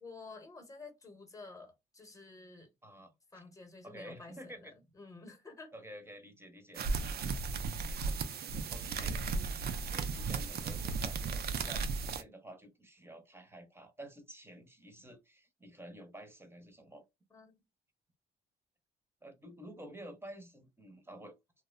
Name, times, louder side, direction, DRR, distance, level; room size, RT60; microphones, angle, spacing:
voice 1, 0.0-2.7 3.3-4.7 5.0-5.7 17.3-17.6, left 3 dB, 15° left, 1.0 m, -51 dB
voice 2, 2.8-3.4 3.8-4.7 5.7-6.8 7.6-8.2 8.7-17.0 19.2-21.4, right 1 dB, 10° right, 0.8 m, -51 dB
sound 1, 6.7-12.2, right 4 dB, 55° right, 0.5 m, -35 dB
2.6 x 2.1 x 2.4 m
cardioid pair, 90°, 20 cm